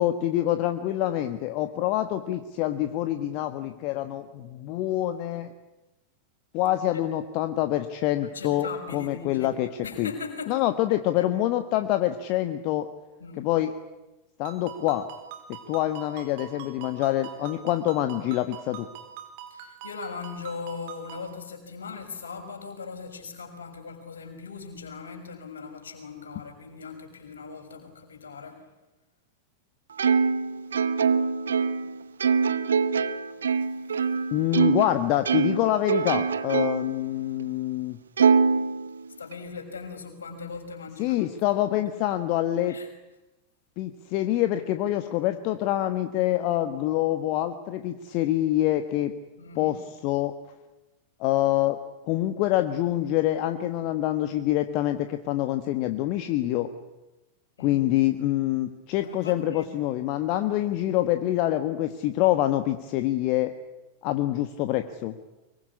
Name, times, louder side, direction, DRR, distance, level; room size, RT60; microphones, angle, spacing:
voice 1, 0.0-5.5 6.5-9.7 10.0-10.1 10.5-12.9 13.4-13.7 14.4-15.0 15.5-18.9 34.3-38.0 41.0-42.8 43.8-49.1 49.6-49.8 50.0-50.3 51.2-51.8 52.1-56.7 57.6-63.5 64.0-65.1, left 14 dB, 45° left, 9 dB, 1.4 m, -26 dB
voice 2, 8.2-9.5 9.8-10.6 11.2-11.3 13.2-13.5 19.5-28.7 39.2-41.2 42.1-42.2 42.7-42.9 49.4-49.8 57.6-57.8 59.0-59.7, left 5 dB, 70° left, 4 dB, 5.9 m, -39 dB
Ringtone, 14.4-21.3, right 9 dB, 50° right, 4.2 m, -44 dB
Plucked string instrument, 30.0-34.9 35.3-37.0 37.4-37.5 38.2-39.3, right 5 dB, 70° right, 0.9 m, -24 dB
24.0 x 23.0 x 9.8 m, 1.0 s
figure-of-eight pair, 90°, 0 cm